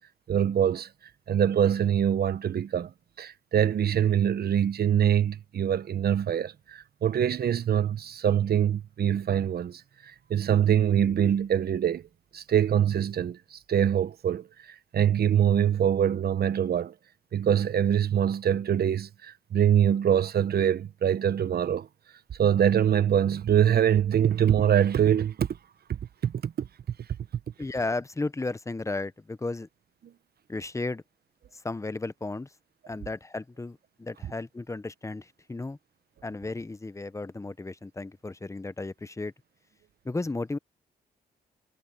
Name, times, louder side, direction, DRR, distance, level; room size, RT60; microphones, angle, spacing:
voice 1, 0.3-0.9 1.3-2.9 3.2-12.0 12.3-14.5 14.9-16.9 17.3-21.9 22.4-25.5 25.9-26.7, right 9 dB, 60° right, 1.1 m, -24 dB
voice 2, 27.6-29.7 30.5-31.0 31.5-32.5 32.9-35.8 36.2-39.3 40.0-40.6, left 2 dB, 15° left, 0.9 m, -34 dB
cardioid pair, 70°, 19 cm